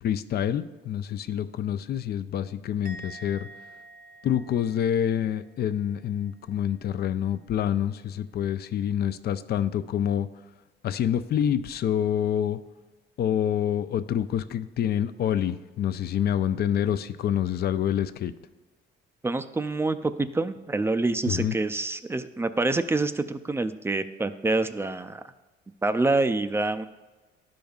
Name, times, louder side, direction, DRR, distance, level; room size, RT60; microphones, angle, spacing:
voice 1, 0.0-3.5 4.2-10.3 10.8-12.6 13.2-18.3 21.3-21.5, left 9 dB, 55° left, 12 dB, 0.4 m, -27 dB
Musical instrument, 2.8-6.2 6.5-6.9, right 2 dB, 50° right, 0.7 m, -48 dB
voice 2, 19.2-25.2 25.8-26.9, right 2 dB, 10° right, 10 dB, 0.3 m, -26 dB
12.0 x 5.1 x 2.4 m, 1.2 s
cardioid pair, 95°, 20 cm